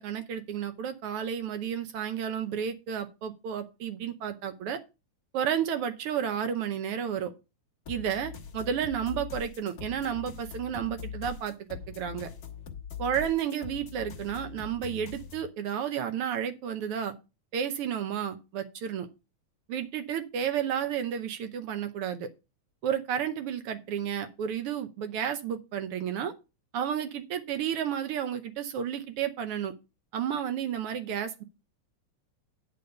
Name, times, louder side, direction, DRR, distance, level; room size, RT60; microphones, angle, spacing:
voice 1, 0.0-4.8 5.3-7.3 7.9-12.3 13.0-17.1 17.5-19.1 19.7-22.3 22.8-26.3 26.7-29.7 30.1-31.4, right 8 dB, 75° right, 9 dB, 1.3 m, -32 dB
sound 1, 7.8-15.5, left 7 dB, 40° left, 1.4 m, -42 dB
10.5 x 3.9 x 6.7 m, 0.28 s
omnidirectional pair, 3.4 m